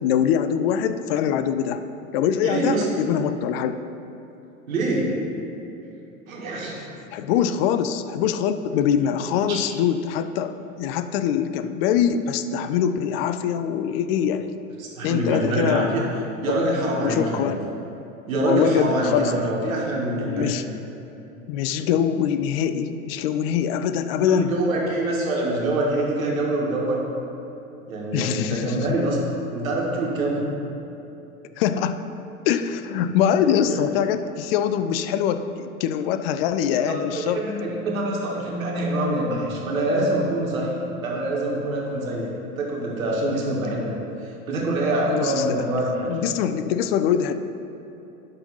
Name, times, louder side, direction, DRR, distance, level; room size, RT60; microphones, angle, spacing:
voice 1, 0.0-1.8 2.1-3.8 7.1-14.5 15.0-15.9 17.0-17.6 18.4-19.5 20.2-20.6 21.5-24.5 28.1-28.9 31.6-32.0 32.5-37.4 45.1-45.6 46.1-47.3, left 8 dB, 45° left, 10 dB, 0.5 m, -23 dB
voice 2, 2.4-2.9 4.7-5.2 6.3-6.8 9.5-9.6 14.8-16.0 16.4-17.5 18.3-20.5 24.3-27.0 27.9-29.2 29.5-30.4 33.4-33.8 36.9-42.3 42.6-43.9 44.2-46.1, right 1 dB, 75° right, -3 dB, 2.0 m, -25 dB
11.5 x 4.0 x 5.6 m, 2.9 s
figure-of-eight pair, 95°, 42 cm